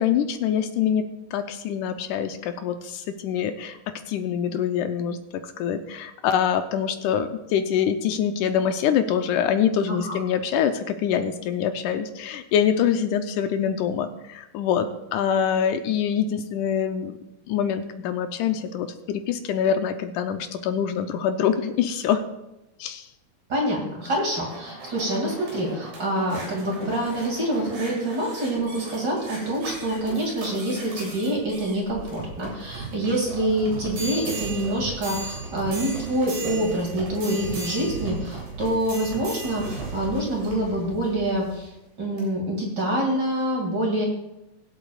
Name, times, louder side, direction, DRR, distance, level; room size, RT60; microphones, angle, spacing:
voice 1, 0.0-3.8 4.1-5.2 5.4-17.1 17.5-22.2 22.8-23.1, left 8 dB, 85° left, 7 dB, 2.1 m, -25 dB
voice 2, 23.5-41.7 42.0-44.1, right 1 dB, 35° right, -2 dB, 2.8 m, -26 dB
sound 1, 24.0-41.6 42.2-42.3, right 3 dB, 80° right, 4.8 m, -36 dB
22.0 x 8.2 x 2.4 m, 0.93 s
omnidirectional pair, 3.6 m